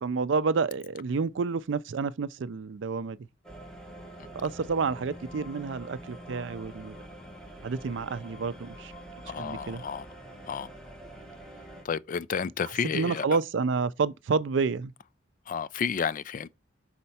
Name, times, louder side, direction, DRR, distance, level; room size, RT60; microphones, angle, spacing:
voice 1, 0.0-3.2 4.3-7.0 7.6-8.9 9.4-9.8 12.6-14.9, right 4 dB, 70° right, 0.4 m, -29 dB
sound 1, 3.4-11.8, right 1 dB, 5° left, 1.6 m, -45 dB
voice 2, 9.3-10.1 10.5-10.7 11.8-13.3 15.5-16.5, left 6 dB, 45° left, 0.4 m, -31 dB
5.6 x 4.3 x 4.2 m
head